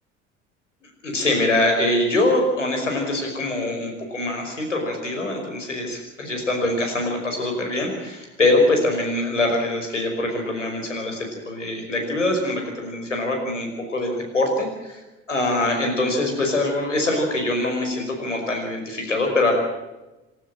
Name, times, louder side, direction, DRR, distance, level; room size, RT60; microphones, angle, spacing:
voice 1, 0.8-15.0 15.3-19.5, left 2 dB, 85° left, 3 dB, 5.4 m, -23 dB
28.5 x 12.5 x 8.9 m, 1.1 s
figure-of-eight pair, 65°, 36 cm